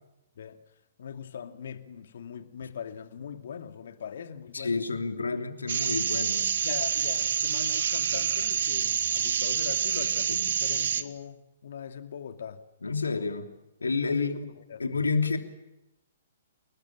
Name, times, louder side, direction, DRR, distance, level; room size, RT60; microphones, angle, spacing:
voice 1, 1.0-4.8 6.6-12.6 14.1-14.8, left 7 dB, 60° left, 2.4 m, -41 dB
voice 2, 4.5-6.6 10.3-10.4 12.8-13.5 13.8-14.3 14.8-15.4, left 4 dB, 80° left, 3.2 m, -29 dB
sound 1, 5.7-11.0, right 8 dB, 60° right, 1.6 m, -27 dB
29.5 x 20.0 x 8.8 m
figure-of-eight pair, 120°, 0 cm